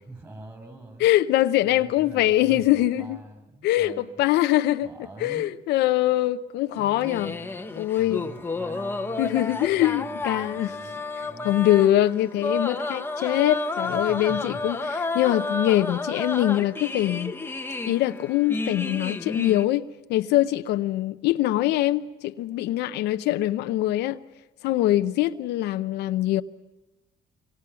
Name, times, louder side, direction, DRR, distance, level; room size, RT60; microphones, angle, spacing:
voice 1, 0.0-1.1 1.6-4.2 4.8-5.5 7.1-11.7 13.8-14.6, right 2 dB, 20° right, 6.7 m, -44 dB
voice 2, 1.0-3.2 3.6-4.9 5.2-7.3 7.8-8.2 9.2-10.7 11.4-17.3 17.8-19.8 20.1-24.2 24.6-26.4, left 14 dB, 85° left, 0.8 m, -23 dB
sound 1, 6.7-19.6, left 3 dB, 15° left, 1.1 m, -31 dB
26.0 x 23.0 x 7.0 m
cardioid pair, 110°, 17 cm